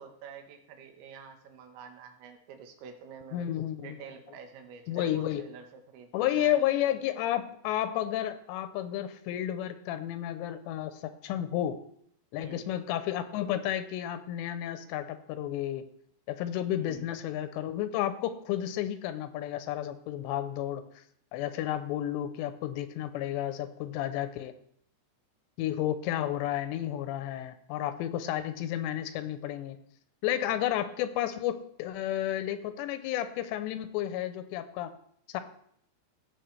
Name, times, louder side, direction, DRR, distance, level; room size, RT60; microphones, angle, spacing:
voice 1, 0.0-3.5 3.8-6.6 12.4-12.7 16.7-17.1, right 6 dB, 85° right, 5 dB, 3.5 m, -48 dB
voice 2, 3.3-4.0 4.9-5.4 6.1-11.8 12.3-15.8 16.3-20.8 21.3-24.5 25.6-29.8 30.2-34.9 35.3-35.4, left 12 dB, 85° left, 10 dB, 2.8 m, -32 dB
17.5 x 6.3 x 3.2 m, 0.69 s
omnidirectional pair, 5.1 m